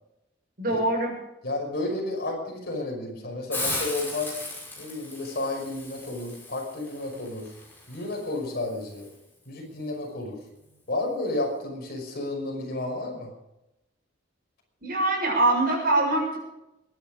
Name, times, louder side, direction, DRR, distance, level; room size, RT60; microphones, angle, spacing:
voice 1, 0.6-1.1 14.8-16.4, right 2 dB, 50° right, 0 dB, 7.1 m, -23 dB
voice 2, 1.4-4.4 4.8-7.5 7.9-9.1 9.5-10.4 10.9-13.3, left 2 dB, 55° left, 1 dB, 5.6 m, -31 dB
Hiss, 3.5-9.1, left 2 dB, 10° left, 5.8 m, -37 dB
22.5 x 10.5 x 5.1 m, 0.90 s
head